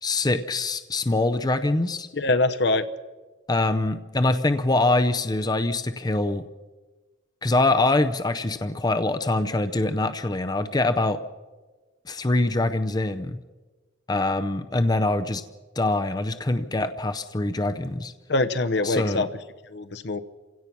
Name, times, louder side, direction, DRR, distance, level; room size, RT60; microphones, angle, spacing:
voice 1, 0.0-2.1 3.5-6.5 7.4-11.2 12.1-13.4 14.1-15.4 15.8-18.1 18.8-19.3, left 2 dB, 20° left, 9 dB, 0.6 m, -24 dB
voice 2, 2.1-2.8 18.3-19.3 19.7-20.2, left 2 dB, 60° left, 11 dB, 0.9 m, -23 dB
28.0 x 17.0 x 6.0 m, 1.3 s
head